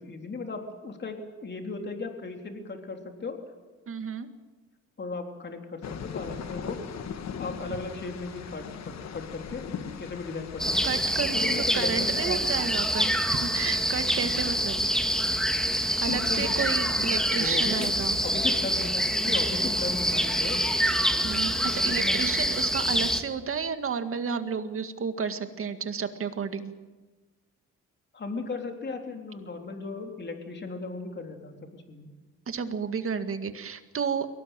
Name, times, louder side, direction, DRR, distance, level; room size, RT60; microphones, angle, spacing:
voice 1, 0.0-3.4 5.0-6.8 7.4-8.7 9.1-9.7 10.0-10.9 11.3-12.4 16.1-16.5 17.0-17.9 18.2-20.6 21.9-22.2 28.1-32.1, left 3 dB, 35° left, 4 dB, 3.6 m, -36 dB
voice 2, 3.9-4.3 10.8-14.9 16.0-18.2 21.2-26.7 32.5-34.3, right 6 dB, 45° right, 8 dB, 2.0 m, -31 dB
sound 1, 5.8-11.2, left 7 dB, 60° left, 1.8 m, -39 dB
sound 2, 10.6-23.2, equal, ahead, 2.1 m, -26 dB
22.5 x 18.0 x 9.0 m, 1.2 s
cardioid pair, 90°, 30 cm